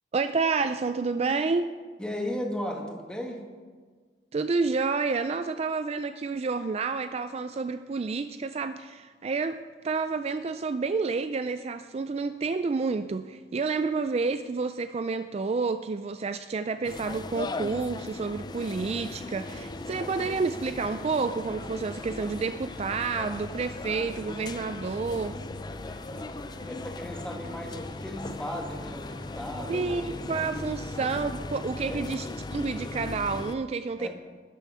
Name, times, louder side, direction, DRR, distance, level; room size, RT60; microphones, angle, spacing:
voice 1, 0.1-1.7 4.3-25.4 29.7-34.1, right 4 dB, 35° right, 10 dB, 0.4 m, -29 dB
voice 2, 2.0-3.5 25.6-30.6 31.9-32.0 34.0-34.1, left 1 dB, 5° left, 0 dB, 1.8 m, -37 dB
sound 1, 16.8-33.6, left 2 dB, 25° left, 0.4 m, -38 dB
sound 2, 18.9-30.5, equal, 55° left, 2.2 m, -49 dB
13.0 x 9.3 x 5.6 m, 1.5 s
head